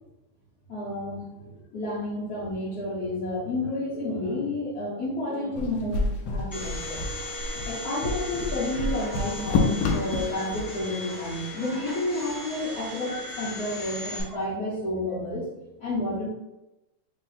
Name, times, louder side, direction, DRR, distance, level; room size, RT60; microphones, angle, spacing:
voice 1, 0.7-7.0 7.6-15.5 15.8-16.3, left 1 dB, 50° left, -10 dB, 1.5 m, -30 dB
sound 1, 5.6-10.7, left 3 dB, 70° left, 1.0 m, -28 dB
Domestic sounds home sounds, 6.5-14.2, left 1 dB, 20° left, 0.6 m, -37 dB
3.4 x 3.1 x 4.1 m, 0.94 s
omnidirectional pair, 2.3 m